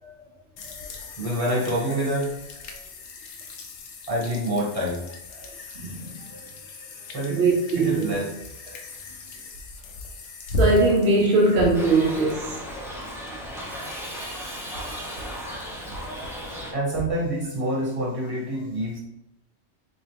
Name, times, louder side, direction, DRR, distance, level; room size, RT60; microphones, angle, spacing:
voice 1, 0.0-2.3 4.1-5.0 6.2-6.5 6.9-7.4 7.7-8.3 15.8-15.9 16.7-19.0, right 1 dB, 30° right, 1.1 m, -28 dB
sound 1, 0.6-16.6, left 2 dB, 75° left, 0.9 m, -37 dB
voice 2, 5.8-6.1 7.3-8.1 10.6-12.6, right 2 dB, 65° right, 0.9 m, -21 dB
Shout / Livestock farm animals working animals, 11.7-16.7, equal, 5° right, 0.5 m, -35 dB
3.6 x 3.0 x 3.4 m
omnidirectional pair, 1.2 m